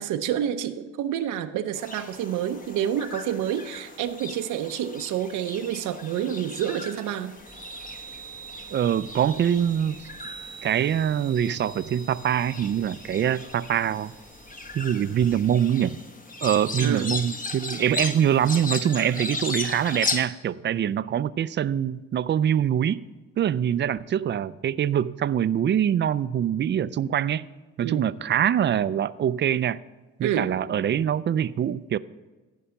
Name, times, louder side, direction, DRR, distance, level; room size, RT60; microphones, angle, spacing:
voice 1, 0.0-7.3 16.8-17.1 27.8-28.1 30.2-30.5, right 10 dB, 85° right, 7 dB, 0.6 m, -28 dB
sound 1, 1.7-20.2, left 3 dB, 25° left, 1.1 m, -37 dB
Chime, 7.4-15.5, right 5 dB, 50° left, 3.8 m, -45 dB
voice 2, 8.7-10.1 10.6-14.1 14.7-16.0 16.4-23.0 23.4-27.5 27.8-29.8 30.2-32.0, right 9 dB, 40° right, 17 dB, 0.4 m, -24 dB
14.0 x 5.5 x 5.8 m, 1.2 s
cardioid pair, 90°, 30 cm